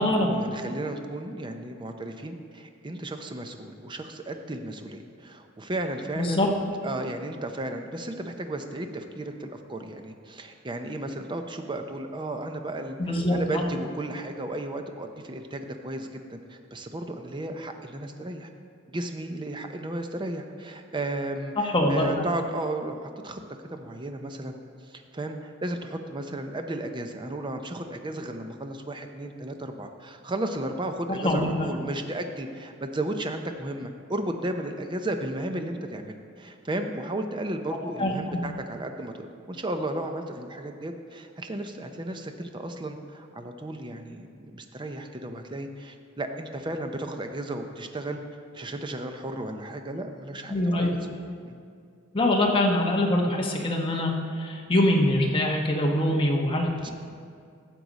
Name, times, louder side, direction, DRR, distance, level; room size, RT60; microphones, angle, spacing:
voice 1, 0.0-6.4 6.8-18.5 18.9-23.4 23.7-24.5 24.9-48.2 48.5-50.5 50.8-51.0 51.4-51.6 56.8-56.9, right 1 dB, 25° right, 5 dB, 0.6 m, -34 dB
voice 2, 6.2-6.5 13.0-13.7 21.6-22.1 31.2-31.5 38.0-38.4 50.5-51.0 52.1-56.9, left 1 dB, 25° left, 0 dB, 1.1 m, -24 dB
13.0 x 7.6 x 4.1 m, 2.3 s
head